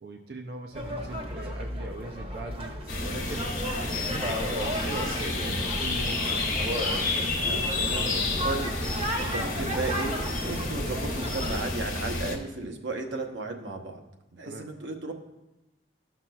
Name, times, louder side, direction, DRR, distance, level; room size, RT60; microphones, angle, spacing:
voice 1, 0.0-6.6 14.4-14.7, right 2 dB, 55° right, 2 dB, 0.5 m, -41 dB
sound 1, 0.7-11.6, equal, 30° right, 0.9 m, -34 dB
sound 2, 2.9-12.4, left 2 dB, 45° left, 1.1 m, -30 dB
voice 2, 7.8-14.0 14.3-15.1, right 2 dB, 85° right, 2 dB, 0.9 m, -35 dB
13.0 x 5.8 x 2.3 m, 0.97 s
head